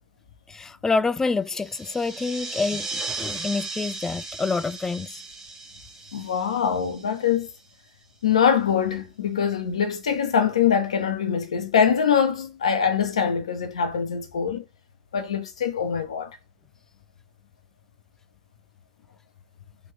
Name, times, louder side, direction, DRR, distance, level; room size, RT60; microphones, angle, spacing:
voice 1, 0.5-5.1, left 4 dB, 15° left, 0.3 m, -27 dB
sound 1, 1.5-7.7, right 3 dB, 20° right, 1.6 m, -36 dB
voice 2, 6.1-7.5 8.2-14.6 15.1-16.3, left 7 dB, 75° left, 0.9 m, -23 dB
3.6 x 3.0 x 3.4 m
figure-of-eight pair, 85°, 3 cm